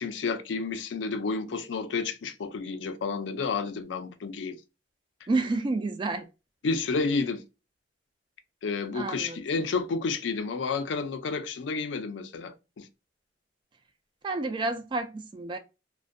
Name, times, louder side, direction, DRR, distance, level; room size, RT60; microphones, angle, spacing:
voice 1, 0.0-4.6 6.6-7.4 8.6-12.9, left 4 dB, 70° left, 0.4 m, -30 dB
voice 2, 5.3-6.3 8.9-9.4 14.2-15.6, right 3 dB, 25° right, 0.3 m, -29 dB
2.5 x 2.1 x 2.4 m
head